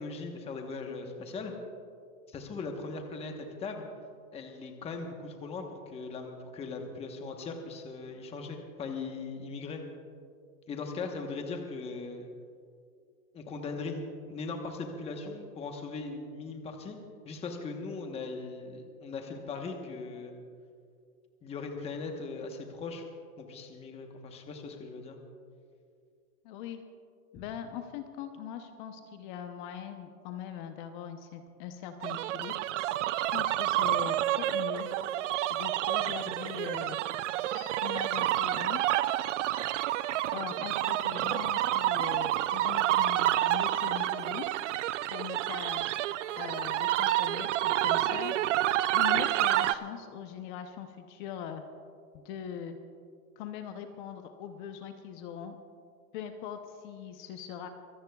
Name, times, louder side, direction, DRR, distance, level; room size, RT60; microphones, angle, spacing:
voice 1, 0.0-1.5 2.3-3.8 4.3-9.8 10.7-12.3 13.3-17.0 17.2-20.3 21.4-23.1 23.4-25.2, left 4 dB, 15° left, 3 dB, 1.1 m, -39 dB
voice 2, 26.4-26.8 27.3-32.5 33.1-34.9 35.5-37.0 37.4-38.8 40.3-44.5 45.1-45.9 46.4-48.4 48.9-51.6 52.1-52.8 53.4-55.6 56.1-57.7, left 9 dB, 35° left, 7 dB, 0.7 m, -41 dB
sound 1, 32.0-49.7, right 14 dB, 55° right, 0.6 m, -29 dB
24.5 x 17.0 x 2.3 m, 2.3 s
hypercardioid pair, 145°, 45 cm